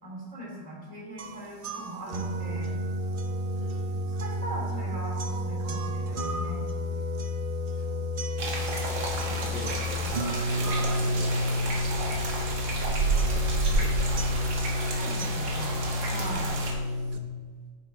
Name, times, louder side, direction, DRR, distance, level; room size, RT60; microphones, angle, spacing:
voice 1, 0.0-2.7 4.1-6.6 14.9-15.8 16.0-16.5, right 2 dB, 20° right, -4 dB, 3.0 m, -40 dB
sound 1, 1.2-17.2, left 1 dB, 70° right, 0.5 m, -30 dB
voice 2, 3.5-4.2 7.7-8.1 9.1-10.2 10.4-13.4 13.7-15.0, left 1 dB, 80° left, -6 dB, 2.5 m, -44 dB
sound 2, 8.4-16.7, right 2 dB, 90° right, 2.3 m, -31 dB
11.5 x 9.5 x 3.5 m, 1.5 s
omnidirectional pair, 2.0 m